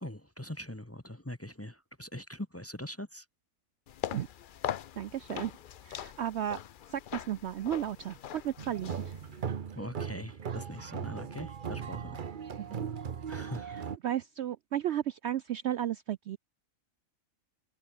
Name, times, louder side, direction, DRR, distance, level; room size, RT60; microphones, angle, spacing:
voice 1, 0.0-3.2 9.7-12.2 13.3-13.8, left 1 dB, 10° left, 1.1 m, -42 dB
sound 1, 3.9-9.5, left 10 dB, 60° left, 0.5 m, -41 dB
voice 2, 5.0-5.5 5.8-6.6 6.9-9.1 12.6-12.9 14.0-16.4, right 11 dB, 65° right, 0.7 m, -34 dB
sound 2, 8.6-14.0, right 7 dB, 40° right, 0.9 m, -38 dB
omnidirectional pair, 1.5 m